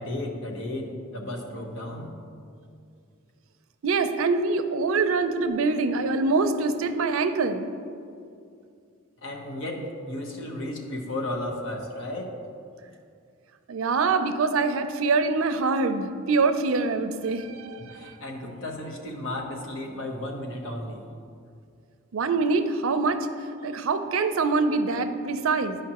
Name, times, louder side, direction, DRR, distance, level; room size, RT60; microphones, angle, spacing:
voice 1, 0.0-2.1 9.2-12.4 17.8-21.1, left 1 dB, 65° left, 1 dB, 0.9 m, -34 dB
voice 2, 3.8-7.7 13.7-18.1 22.1-23.3 23.6-25.8, right 4 dB, 75° right, 9 dB, 0.4 m, -24 dB
10.0 x 5.0 x 2.9 m, 2.4 s
head